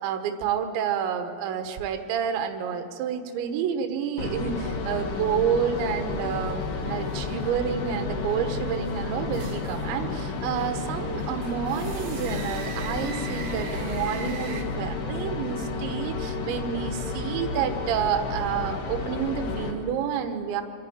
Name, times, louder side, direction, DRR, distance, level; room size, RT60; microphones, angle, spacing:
voice 1, 0.0-20.6, right 8 dB, 80° right, 6 dB, 3.4 m, -29 dB
sound 1, 4.2-19.7, left 4 dB, 70° left, 3.5 m, -31 dB
sound 2, 5.8-14.6, right 6 dB, 65° right, 2.6 m, -43 dB
27.0 x 11.0 x 8.7 m, 2.3 s
omnidirectional pair, 5.2 m